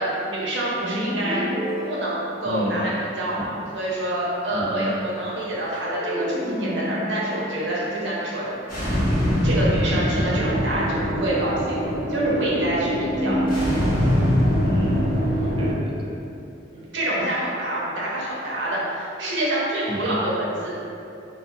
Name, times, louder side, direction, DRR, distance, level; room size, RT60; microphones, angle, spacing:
voice 1, 0.0-1.4 1.8-8.5 9.0-9.2 9.4-11.8 12.1-13.3 15.4-15.5 16.7-20.7, right 1 dB, 65° right, -6 dB, 0.7 m, -27 dB
sound 1, 0.8-3.2 5.6-8.9, equal, 10° left, 0.8 m, -31 dB
voice 2, 2.5-3.0 3.4-3.5 4.5-5.0 13.2-13.7 14.6-15.1 15.6-16.2 19.9-20.2, equal, 25° right, -3 dB, 0.3 m, -30 dB
sound 2, 8.7-15.7, equal, 50° left, 0.8 m, -23 dB
2.5 x 2.5 x 2.6 m, 2.7 s
head